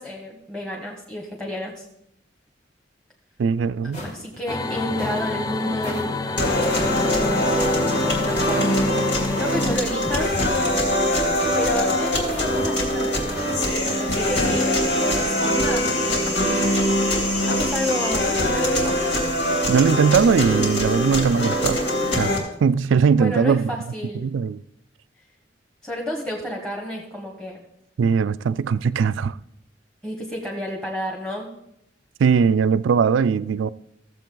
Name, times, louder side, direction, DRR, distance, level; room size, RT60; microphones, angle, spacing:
voice 1, 0.0-1.8 4.0-6.2 7.1-8.8 9.3-10.3 11.5-13.5 13.8-16.5 17.4-18.3 18.5-19.0 23.2-24.3 25.8-27.6 30.0-31.5, equal, 5° left, 1.3 m, -31 dB
voice 2, 3.4-4.0 19.7-21.9 22.2-23.7 24.2-24.6 28.0-29.4 32.2-33.7, right 6 dB, 90° right, 0.4 m, -20 dB
sound 1, 3.9-4.4 4.9-5.3 5.8-6.1 6.7-7.0 7.6-7.8 8.4-8.7 9.4-9.7 10.3-10.8 11.3-11.6 12.3-12.7 13.3-13.6 14.2-14.6, left 1 dB, 40° left, 1.9 m, -36 dB
sound 2, 4.5-9.8, left 2 dB, 20° left, 0.4 m, -28 dB
sound 3, 6.4-22.4, left 1 dB, 70° left, 3.1 m, -22 dB
16.0 x 7.5 x 3.8 m
head